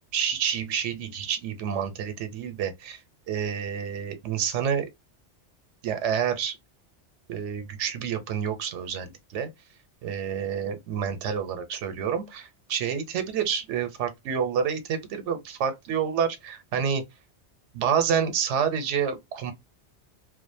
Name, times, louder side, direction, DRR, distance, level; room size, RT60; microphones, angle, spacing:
voice 1, 0.1-3.0 3.3-4.9 5.8-6.6 7.3-9.5 10.0-17.0 17.7-19.5, right 7 dB, 85° right, 0.9 m, -28 dB
2.4 x 2.1 x 2.5 m
omnidirectional pair, 1.2 m